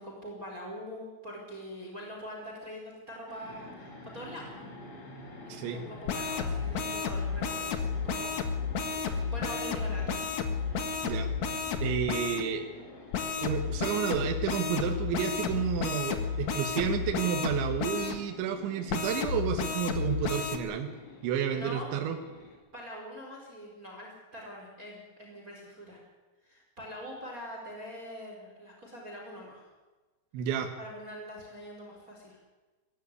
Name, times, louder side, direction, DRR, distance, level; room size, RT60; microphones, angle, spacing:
voice 1, 0.0-4.6 5.5-8.4 8.8-10.4 21.5-21.9 22.7-26.0 26.4-29.6 30.8-32.4, equal, 15° right, 0 dB, 4.5 m, -43 dB
sound 1, 3.3-22.6, left 4 dB, 35° left, 4.5 m, -52 dB
sound 2, 3.4-22.6, left 1 dB, 65° left, 9.8 m, -52 dB
sound 3, 6.1-12.4 13.1-18.2 18.9-20.6, left 5 dB, 90° left, 1.6 m, -32 dB
voice 2, 11.8-12.7 13.4-20.9 21.2-22.2 30.3-30.7, right 8 dB, 70° right, 4 dB, 3.5 m, -31 dB
20.5 x 15.5 x 9.8 m, 1.2 s
omnidirectional pair, 6.0 m